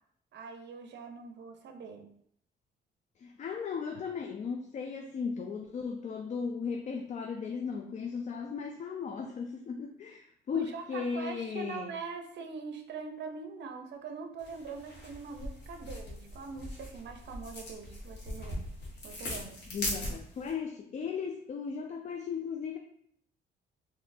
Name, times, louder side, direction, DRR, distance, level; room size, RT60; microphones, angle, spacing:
voice 1, 0.3-2.1 10.5-18.6 19.0-19.6, right 5 dB, 60° right, 5 dB, 0.6 m, -43 dB
voice 2, 3.2-11.9 19.3-22.8, left 6 dB, 35° left, 4 dB, 0.4 m, -36 dB
sound 1, 14.4-20.5, left 1 dB, 60° left, 1.3 m, -40 dB
3.7 x 2.7 x 2.6 m, 0.67 s
cardioid pair, 90°, 20 cm